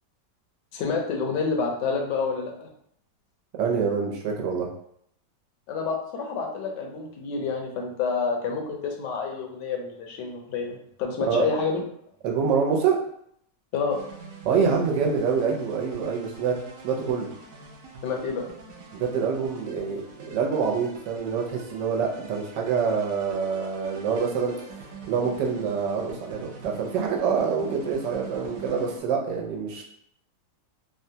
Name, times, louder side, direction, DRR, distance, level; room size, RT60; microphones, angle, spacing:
voice 1, 0.7-2.7 5.7-11.8 13.7-14.0 18.0-18.5, left 5 dB, 80° left, 1 dB, 1.2 m, -28 dB
voice 2, 3.6-4.7 11.3-11.5 12.2-13.0 14.4-16.6 16.8-17.3 18.9-20.0 20.3-29.8, right 6 dB, 90° right, 0 dB, 1.3 m, -26 dB
sound 1, 13.9-29.0, right 3 dB, 70° right, 0.9 m, -44 dB
3.6 x 2.2 x 2.7 m, 0.70 s
omnidirectional pair, 1.9 m